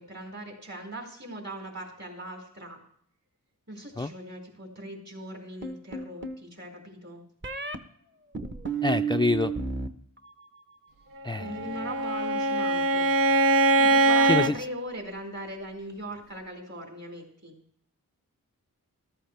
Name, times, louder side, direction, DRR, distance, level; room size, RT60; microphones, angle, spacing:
voice 1, 0.0-2.8 3.7-7.2 11.4-13.1 13.8-17.5, right 1 dB, 50° right, 1 dB, 4.6 m, -39 dB
sound 1, 5.6-6.4 7.4-7.8 8.3-9.9 10.2-10.7, right 6 dB, 35° right, 1.0 m, -32 dB
voice 2, 8.8-9.5 11.2-11.5 14.3-14.5, left 3 dB, 15° left, 9 dB, 0.4 m, -26 dB
Bowed string instrument, 11.4-14.6, right 2 dB, 70° right, 0.7 m, -22 dB
13.5 x 13.0 x 3.3 m, 0.65 s
cardioid pair, 50°, 35 cm